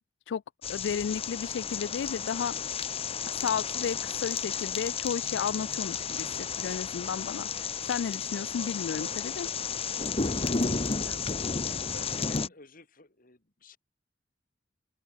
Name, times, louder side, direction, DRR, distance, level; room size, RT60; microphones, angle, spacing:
sound 1, 0.6-12.5, left 5 dB, 30° left, 0.9 m, -32 dB
voice 1, 0.7-2.5 3.3-9.5, left 7 dB, 70° left, 0.3 m, -33 dB
sound 2, 0.8-0.9 1.4-1.5 1.7-1.8 2.8-2.9 3.7-3.8 4.5-5.5 8.3-9.2 10.4-10.7 11.0-11.3, right 3 dB, 60° right, 6.0 m, -52 dB
voice 2, 10.2-11.0 11.6-13.8, left 2 dB, 50° left, 3.1 m, -51 dB
open air
head